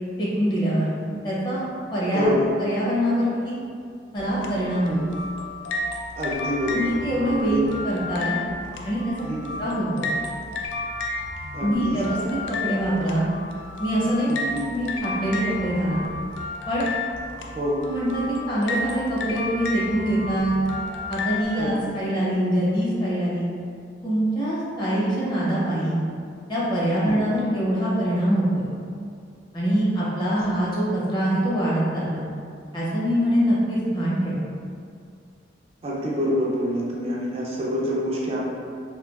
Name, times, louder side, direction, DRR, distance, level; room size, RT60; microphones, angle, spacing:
voice 1, 0.2-1.0 1.2-2.3 2.6-3.5 4.1-5.0 6.7-7.6 7.8-8.4 8.8-9.1 9.6-10.1 11.6-12.2 12.5-13.3 13.8-16.0 16.7-16.9 17.8-20.6 21.1-23.5 24.0-26.0 26.5-28.7 29.5-32.3 32.7-34.4, equal, 25° left, -7 dB, 0.6 m, -24 dB
voice 2, 2.1-2.5 4.9-5.0 6.2-6.9 7.4-7.6 9.2-9.6 11.5-11.9 14.3-14.6 17.5-17.8 21.6-21.7 27.0-27.4 35.8-38.4, equal, 35° right, -5 dB, 0.3 m, -26 dB
sound 1, 4.2-21.4, left 2 dB, 75° left, 0.3 m, -32 dB
3.1 x 2.2 x 2.3 m, 2.3 s
head